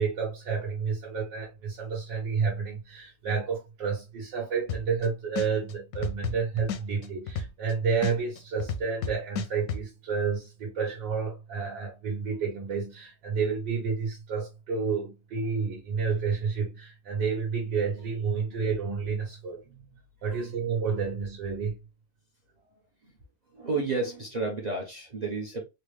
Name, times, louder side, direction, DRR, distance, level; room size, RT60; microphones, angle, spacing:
voice 1, 0.0-19.6 20.2-21.8, right 5 dB, 85° right, 1.9 m, -30 dB
sound 1, 4.7-5.1 5.4-7.7 8.0-9.8, left 5 dB, 70° left, 0.9 m, -32 dB
voice 2, 23.5-25.6, right 3 dB, 65° right, 0.4 m, -31 dB
4.1 x 2.1 x 3.1 m
omnidirectional pair, 1.9 m